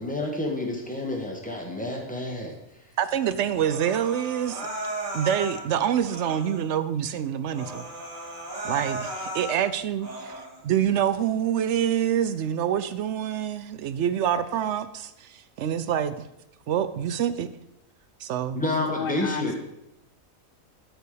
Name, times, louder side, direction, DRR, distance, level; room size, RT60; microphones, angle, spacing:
voice 1, 0.0-2.5 18.5-19.5, left 1 dB, 5° left, 0 dB, 1.6 m, -29 dB
voice 2, 3.0-4.7 5.1-7.9 8.6-10.3 10.6-16.1 16.7-17.5 18.2-18.6, right 9 dB, 65° right, 12 dB, 0.8 m, -26 dB
Human voice, 3.6-5.6 6.0-6.7 7.1-7.2 7.5-9.6 10.0-10.6, right 1 dB, 35° right, 1.8 m, -35 dB
voice 3, 18.7-19.6, left 6 dB, 55° left, 8 dB, 0.6 m, -31 dB
12.5 x 4.6 x 5.1 m, 0.84 s
omnidirectional pair, 1.5 m